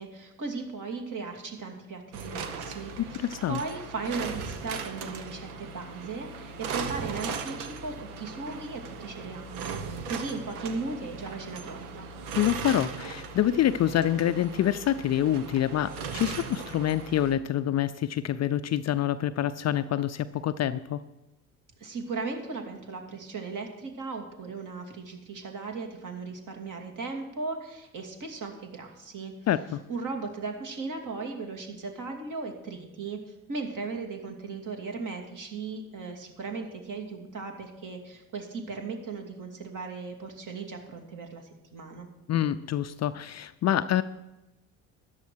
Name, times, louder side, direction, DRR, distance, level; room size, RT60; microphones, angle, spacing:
voice 1, 0.0-12.1 21.8-29.3 29.9-33.2 33.5-41.4 41.7-42.1, right 4 dB, 45° right, 3 dB, 2.7 m, -37 dB
sound 1, 2.1-17.3, right 5 dB, 75° right, 1.2 m, -38 dB
voice 2, 3.0-3.6 12.3-21.0 29.5-29.8 42.3-44.0, left 11 dB, 40° left, 13 dB, 0.5 m, -26 dB
13.5 x 10.5 x 4.7 m, 0.97 s
hypercardioid pair, 55°, 44 cm